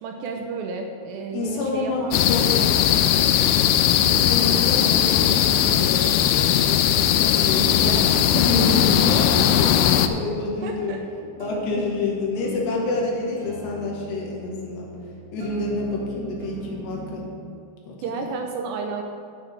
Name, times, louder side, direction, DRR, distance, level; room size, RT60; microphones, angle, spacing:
voice 1, 0.0-3.4 7.4-8.5 10.6-11.0 18.0-19.0, right 4 dB, 80° right, 3 dB, 2.7 m, -33 dB
voice 2, 1.3-2.6 4.0-6.3 6.6-7.9 8.3-10.9 11.4-14.9 15.3-17.3 17.9-18.0, left 3 dB, 70° left, -2 dB, 3.3 m, -28 dB
sound 1, 1.4-17.4, right 2 dB, 50° right, 2.8 m, -40 dB
sound 2, 2.1-10.1, left 10 dB, 90° left, 2.4 m, -19 dB
15.0 x 8.3 x 3.4 m, 2.4 s
omnidirectional pair, 5.3 m